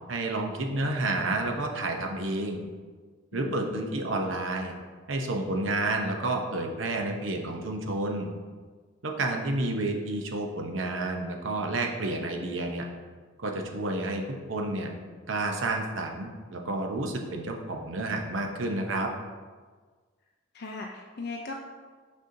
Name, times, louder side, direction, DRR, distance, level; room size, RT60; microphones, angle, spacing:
voice 1, 0.1-2.6 3.3-4.7 5.1-8.3 9.0-12.8 13.4-14.2 14.5-14.9 15.3-19.1, right 2 dB, 75° right, 2 dB, 0.8 m, -30 dB
voice 2, 3.3-3.8 20.5-21.5, left 3 dB, 55° left, 1 dB, 0.4 m, -38 dB
6.5 x 5.4 x 2.7 m, 1.5 s
head